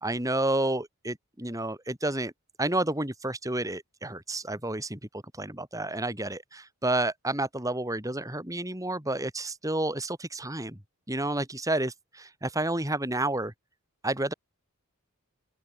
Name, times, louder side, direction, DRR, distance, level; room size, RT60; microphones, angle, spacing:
voice 1, 0.0-2.3 2.6-5.0 5.4-10.8 11.1-13.5 14.0-14.3, right 2 dB, 15° right, 4.2 m, -30 dB
open air
head